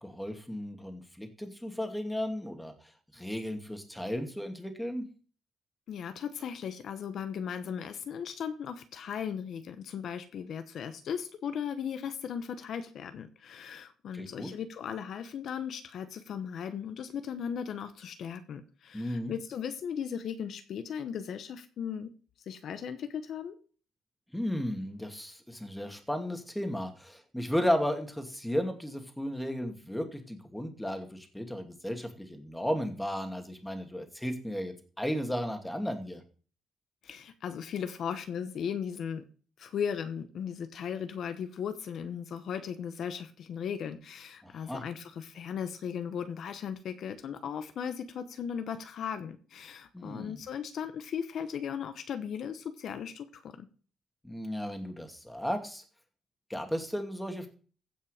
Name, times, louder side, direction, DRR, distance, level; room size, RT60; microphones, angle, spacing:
voice 1, 0.0-2.7 3.1-5.0 14.1-14.5 18.9-19.3 24.3-36.2 44.4-44.8 49.9-50.4 54.2-55.8 56.5-57.5, equal, 5° left, 5 dB, 2.5 m, -34 dB
voice 2, 5.9-22.1 22.5-23.5 37.0-39.2 39.6-53.7, left 7 dB, 65° left, 10 dB, 1.1 m, -37 dB
15.5 x 5.6 x 5.0 m, 0.40 s
cardioid pair, 90°, 0 cm